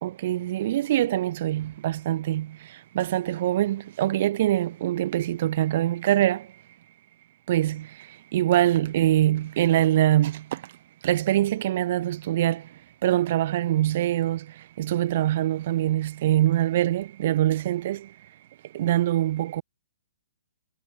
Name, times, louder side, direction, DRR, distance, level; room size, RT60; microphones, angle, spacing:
voice 1, 0.0-6.5 7.5-10.7 11.0-12.7 13.0-18.2 18.7-19.6, right 13 dB, 45° right, 0.9 m, -24 dB
figure-of-eight pair, 130°, 0 cm